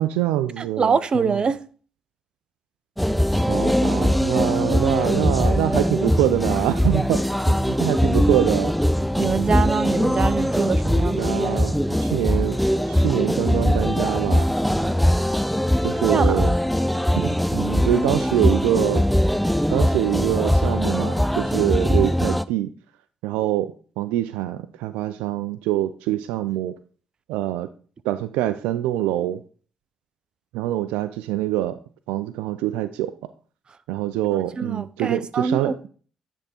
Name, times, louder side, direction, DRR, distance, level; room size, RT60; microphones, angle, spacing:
voice 1, 0.0-1.4 3.3-8.8 10.9-11.7 12.0-12.6 12.9-14.5 15.8-16.5 17.2-19.1 19.7-22.7 23.2-26.8 27.3-27.7 28.0-29.4 30.5-31.8 32.1-33.1 33.9-35.8, right 13 dB, 85° right, 0.3 m, -25 dB
voice 2, 0.6-1.6 9.2-11.3 16.1-16.4 34.3-35.9, right 5 dB, 45° right, 0.6 m, -24 dB
sound 1, 3.0-22.4, equal, ahead, 0.4 m, -21 dB
9.8 x 3.6 x 4.2 m
supercardioid pair, 55°, 2 cm